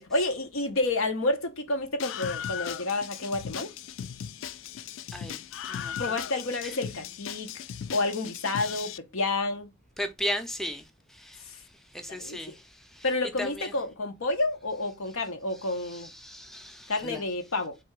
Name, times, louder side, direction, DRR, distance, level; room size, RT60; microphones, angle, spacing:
voice 1, 0.0-3.7 6.0-7.5 7.9-9.7 11.4-11.6 12.1-12.4 13.0-16.1 16.9-17.8, left 2 dB, 85° left, 0.8 m, -29 dB
Screaming, 2.0-9.0, left 8 dB, 70° left, 0.3 m, -37 dB
voice 2, 10.0-10.8 11.1-11.4 11.9-13.0 13.4-13.7 15.8-17.2, equal, ahead, 0.5 m, -36 dB
3.8 x 2.8 x 4.5 m
head